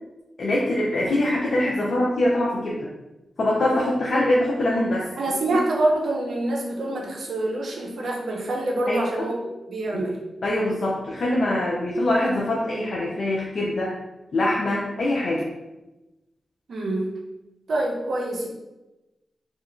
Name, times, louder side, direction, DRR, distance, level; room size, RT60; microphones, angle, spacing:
voice 1, 0.4-2.9 3.4-5.1 8.9-9.3 9.9-10.0 10.4-13.9 14.3-15.5, left 1 dB, 65° left, -4 dB, 0.4 m, -23 dB
voice 2, 5.2-9.4 9.7-10.2 16.7-17.1 17.7-18.5, right 2 dB, 75° right, 0 dB, 0.5 m, -26 dB
2.8 x 2.3 x 2.4 m, 1.0 s
cardioid pair, 50°, 0 cm